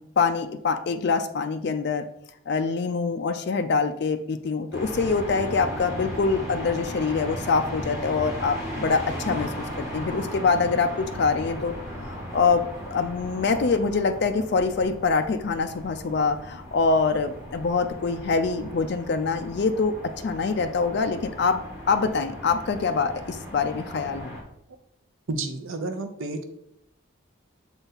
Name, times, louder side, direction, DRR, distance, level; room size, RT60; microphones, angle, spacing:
voice 1, 0.2-2.1 2.5-11.7 12.0-12.6 12.9-19.9 20.2-21.6 21.9-24.3, left 4 dB, 50° left, 7 dB, 0.4 m, -25 dB
sound 1, 4.7-24.4, equal, 15° right, 1.9 m, -37 dB
voice 2, 25.3-26.4, right 3 dB, 75° right, 6 dB, 0.8 m, -31 dB
6.8 x 4.0 x 4.0 m, 0.77 s
head